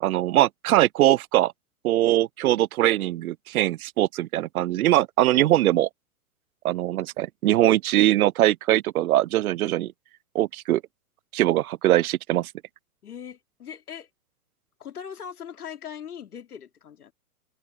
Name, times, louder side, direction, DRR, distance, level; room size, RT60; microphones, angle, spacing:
voice 1, 0.0-1.5 1.8-5.9 6.6-9.9 10.3-10.8 11.3-12.5, right 14 dB, 70° right, 0.5 m, -21 dB
voice 2, 13.0-14.1 14.8-17.1, left 8 dB, 80° left, 2.6 m, -40 dB
open air
hypercardioid pair, 125°, 45 cm